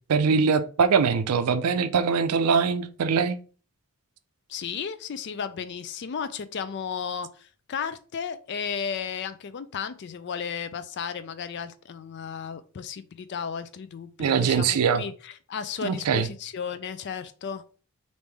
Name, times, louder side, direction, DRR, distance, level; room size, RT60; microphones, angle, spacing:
voice 1, 0.1-3.4 14.2-15.0 15.8-16.3, right 5 dB, 85° right, 0.4 m, -22 dB
voice 2, 4.5-17.6, left 6 dB, 50° left, 0.3 m, -34 dB
3.4 x 2.6 x 3.3 m
head